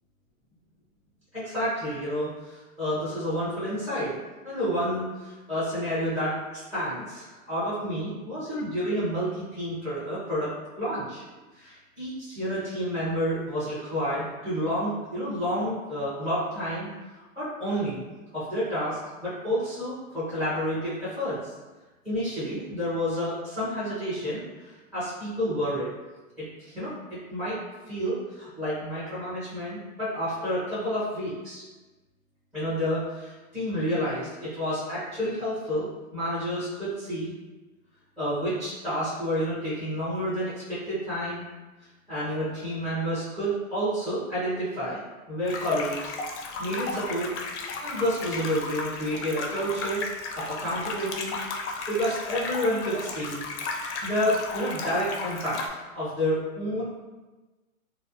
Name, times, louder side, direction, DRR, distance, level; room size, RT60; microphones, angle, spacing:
voice 1, 1.3-4.1 4.4-10.5 10.8-11.2 11.5-16.9 17.1-18.0 18.3-21.5 22.0-25.9 26.4-27.6 27.9-31.6 32.5-37.3 38.2-41.4 42.1-45.0 45.3-47.3 47.8-50.0 50.4-51.4 51.9-53.4 54.0-57.0, equal, 5° right, -12 dB, 0.4 m, -30 dB
sound 1, 45.5-55.7, left 3 dB, 55° left, 0.5 m, -34 dB
2.7 x 2.0 x 2.4 m, 1.2 s
hypercardioid pair, 125°, 42 cm